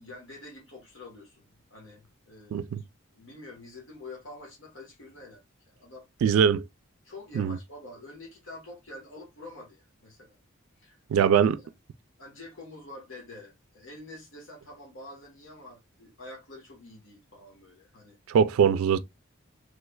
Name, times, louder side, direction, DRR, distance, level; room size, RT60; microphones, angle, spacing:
voice 1, 0.0-2.9 3.1-6.1 7.0-10.4 10.8-11.3 12.2-18.2, left 2 dB, 65° left, 1.3 m, -47 dB
voice 2, 6.2-6.6 7.4-7.6 11.1-11.6 18.3-19.0, right 7 dB, 85° right, 0.3 m, -22 dB
3.3 x 3.1 x 2.2 m
head